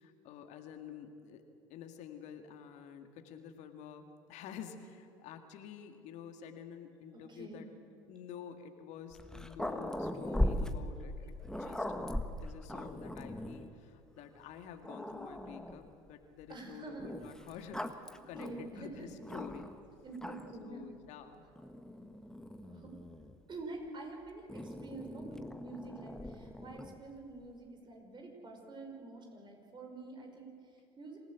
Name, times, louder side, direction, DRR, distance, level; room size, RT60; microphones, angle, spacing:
voice 1, 0.0-1.4 1.7-7.7 8.1-11.3 11.6-11.9 12.4-18.5 18.7-19.7 20.6-21.5, left 8 dB, 65° left, 6 dB, 2.0 m, -49 dB
voice 2, 7.1-7.6 16.5-17.1 18.1-19.1 20.0-20.8 22.6-22.9 23.5-31.2, right 3 dB, 35° right, 3 dB, 5.7 m, -47 dB
Growling, 9.1-13.7 14.4-14.5 14.8-15.9 17.0-19.8 20.1-20.7 21.6-23.4 24.5-27.0, left 1 dB, 5° left, 1.5 m, -39 dB
26.5 x 15.5 x 8.2 m, 2.5 s
hypercardioid pair, 70°, 13 cm